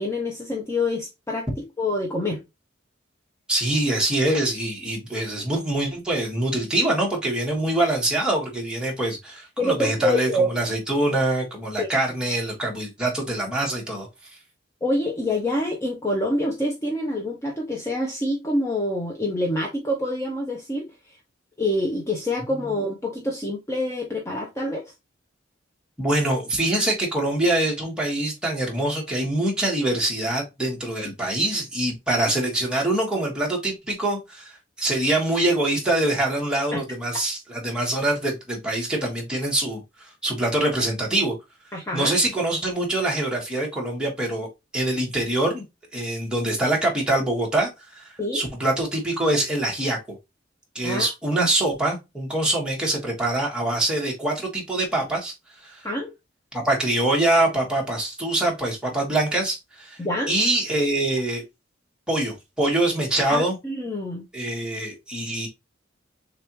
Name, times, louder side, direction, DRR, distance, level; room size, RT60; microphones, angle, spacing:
voice 1, 0.0-2.4 9.6-10.5 11.8-11.9 14.8-20.9 21.6-24.9 36.7-36.8 41.7-42.2 48.2-48.4 50.8-51.1 51.4-51.5 55.8-56.1 60.0-60.3 63.3-64.2, left 1 dB, 15° left, 0.9 m, -26 dB
voice 2, 3.5-14.1 26.0-34.5 34.8-41.3 41.9-44.5 44.7-45.6 45.9-47.7 48.0-48.1 48.3-50.2 50.7-55.3 55.6-55.8 56.5-60.0 60.3-61.4 62.1-63.6 64.3-65.5, right 1 dB, 5° right, 1.6 m, -24 dB
6.6 x 2.6 x 3.0 m
head